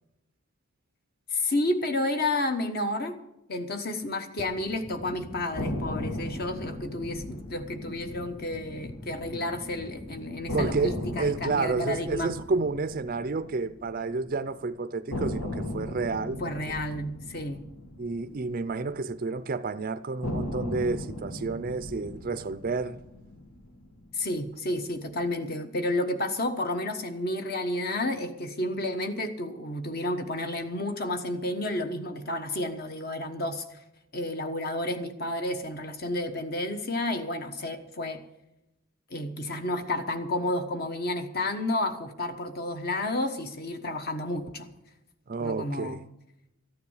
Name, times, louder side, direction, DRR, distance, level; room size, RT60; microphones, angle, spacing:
voice 1, 1.3-3.2 3.5-12.3 16.4-17.6 24.1-33.8 34.1-38.2 39.1-44.7 45.4-46.1, left 1 dB, 45° left, 1.3 m, -31 dB
sound 1, 4.4-11.3, left 2 dB, 15° left, 0.4 m, -44 dB
sound 2, 5.6-9.6 9.9-10.0 10.5-14.6 15.1-19.5 20.2-24.6, left 1 dB, 90° left, 1.8 m, -37 dB
voice 2, 10.5-16.4 18.0-23.0 45.3-46.0, right 4 dB, 40° right, 0.4 m, -30 dB
14.0 x 9.5 x 7.3 m
head